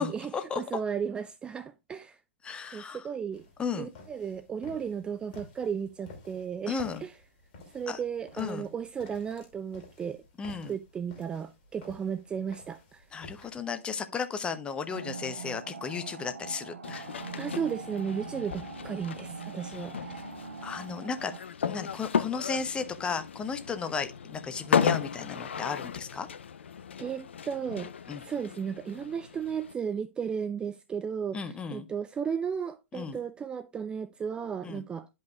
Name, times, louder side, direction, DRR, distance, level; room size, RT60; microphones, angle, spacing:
voice 1, 0.0-2.2 2.7-3.5 3.8-7.1 7.7-10.2 10.7-13.1 17.4-20.3 27.0-27.9 28.2-35.1, right 7 dB, 15° right, 0.3 m, -34 dB
voice 2, 2.4-3.1 3.6-3.9 6.7-7.0 7.9-8.0 8.4-8.7 10.4-10.7 13.1-17.1 20.6-21.3 21.6-26.3 28.1-28.2 31.3-31.9 32.9-33.2 34.6-34.8, left 5 dB, 15° left, 0.7 m, -34 dB
sound 1, 3.3-13.6, left 3 dB, 45° left, 2.6 m, -52 dB
sound 2, 14.9-21.4, right 5 dB, 75° right, 1.1 m, -43 dB
sound 3, 16.8-29.7, left 7 dB, 70° left, 0.6 m, -35 dB
11.5 x 5.4 x 2.3 m
figure-of-eight pair, 110°, 7 cm